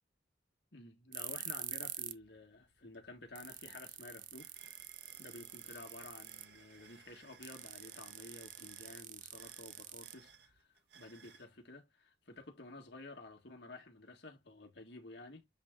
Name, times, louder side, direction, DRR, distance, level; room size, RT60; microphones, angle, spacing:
voice 1, 0.7-4.6 5.2-15.5, left 2 dB, 60° left, 1.7 m, -52 dB
sound 1, 1.1-2.2 2.5-2.6 3.1-3.2 3.3-6.6 7.4-10.6, right 12 dB, 45° right, 0.5 m, -46 dB
sound 2, 2.9-3.0 3.3-11.5, right 6 dB, 60° right, 1.4 m, -61 dB
8.0 x 3.4 x 3.7 m
head